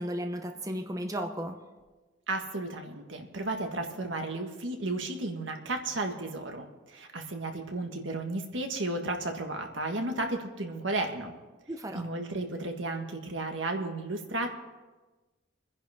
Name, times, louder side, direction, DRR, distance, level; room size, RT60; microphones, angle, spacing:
voice 1, 0.0-1.7 11.7-12.1, equal, 20° right, 5 dB, 0.9 m, -35 dB
voice 2, 2.3-11.3 11.9-14.5, right 2 dB, 75° right, 4 dB, 1.7 m, -33 dB
27.0 x 10.5 x 3.6 m, 1.2 s
head